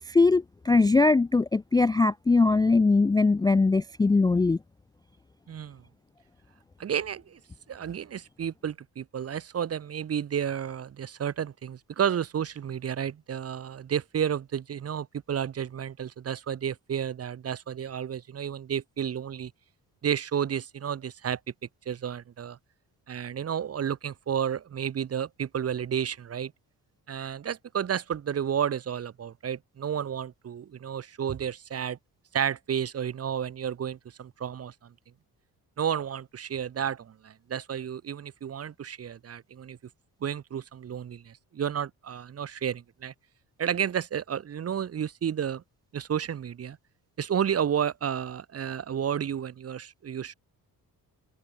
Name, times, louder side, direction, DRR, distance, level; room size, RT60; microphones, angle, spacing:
voice 1, 0.0-4.6, left 3 dB, 10° left, 0.3 m, -21 dB
voice 2, 5.5-5.8 6.8-7.4 7.7-19.5 20.0-21.4 21.9-22.6 23.1-26.5 27.1-32.0 32.3-34.9 35.8-39.8 40.2-43.1 43.6-45.6 45.9-46.8 47.2-50.3, right 8 dB, 40° right, 0.8 m, -31 dB
cardioid pair, 90°, 37 cm